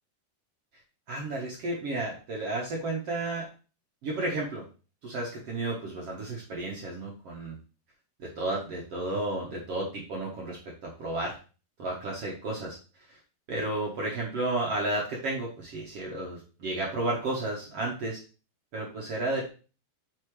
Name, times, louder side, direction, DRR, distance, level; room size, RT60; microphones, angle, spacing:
voice 1, 1.1-3.5 4.0-4.6 5.0-7.6 8.2-11.4 11.8-12.8 13.1-13.2 13.5-18.2 18.7-19.5, right 2 dB, 65° right, -2 dB, 1.5 m, -32 dB
8.5 x 5.0 x 3.2 m, 0.35 s
omnidirectional pair, 4.8 m